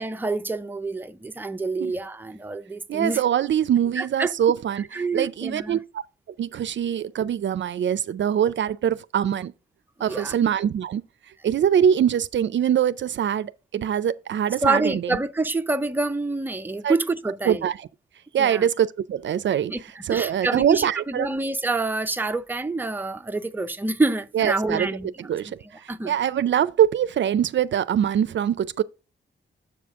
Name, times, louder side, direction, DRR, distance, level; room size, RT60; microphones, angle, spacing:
voice 1, 0.0-3.2 4.0-4.3 4.8-5.8 10.0-10.4 14.6-17.7 18.4-18.7 19.7-25.6 25.9-26.1, right 3 dB, 10° right, 0.5 m, -27 dB
voice 2, 2.9-4.8 5.1-5.8 6.4-9.5 10.0-11.0 11.4-14.9 16.8-16.9 17.5-17.9 18.3-19.7 20.0-21.3 24.3-24.9 25.3-25.6 26.1-28.8, right 9 dB, 65° right, 0.4 m, -23 dB
7.1 x 5.2 x 3.5 m
wide cardioid pair, 95°, 21 cm